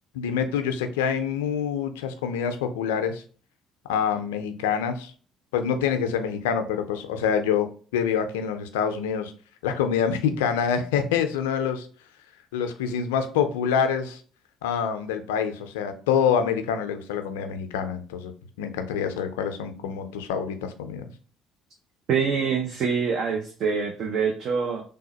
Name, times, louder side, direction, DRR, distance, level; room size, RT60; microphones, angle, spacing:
voice 1, 0.1-3.2 3.9-5.1 5.5-7.7 7.9-9.3 9.6-11.9 12.5-14.2 14.6-18.3 18.6-21.1, left 7 dB, 85° left, 8 dB, 0.4 m, -26 dB
voice 2, 22.1-24.8, right 6 dB, 60° right, 3 dB, 0.5 m, -25 dB
3.4 x 2.1 x 3.9 m, 0.41 s
hypercardioid pair, 60°, 0 cm